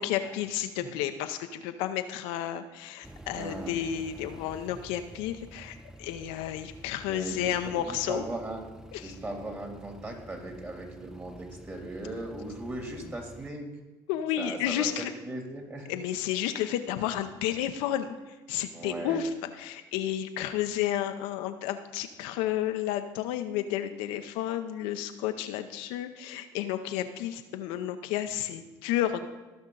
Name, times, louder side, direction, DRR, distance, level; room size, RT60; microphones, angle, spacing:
voice 1, 0.0-8.2 8.9-9.1 14.1-15.1 15.9-29.3, left 11 dB, 80° left, 7 dB, 0.6 m, -31 dB
sound 1, 3.0-13.5, right 1 dB, 5° right, 0.5 m, -49 dB
voice 2, 3.3-3.8 7.1-8.7 9.0-13.7 14.4-14.9 15.2-15.9 18.7-19.2, right 1 dB, 25° right, 1 dB, 2.9 m, -38 dB
15.0 x 5.5 x 3.9 m, 1.2 s
supercardioid pair, 70°, 10 cm